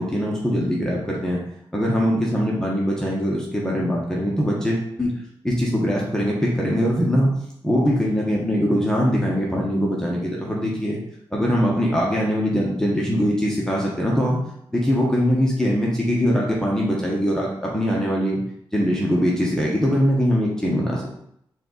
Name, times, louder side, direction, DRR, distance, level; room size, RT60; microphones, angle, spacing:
voice 1, 0.0-1.4 1.7-5.1 5.4-7.3 7.6-11.0 11.3-14.4 14.7-18.4 18.7-21.1, equal, 5° left, -4 dB, 1.1 m, -22 dB
4.5 x 2.6 x 3.9 m, 0.72 s
cardioid pair, 60°, 9 cm